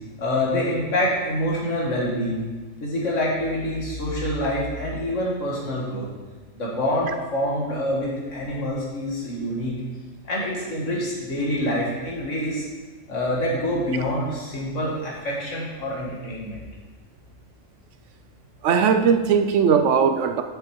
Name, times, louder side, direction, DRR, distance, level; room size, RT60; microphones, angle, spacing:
voice 1, 0.2-2.5 2.8-6.1 6.5-9.8 10.2-12.7 13.1-16.6, left 1 dB, 85° left, -4 dB, 2.0 m, -26 dB
voice 2, 18.6-20.4, right 6 dB, 75° right, 8 dB, 1.0 m, -19 dB
7.7 x 7.7 x 4.6 m, 1.3 s
omnidirectional pair, 1.3 m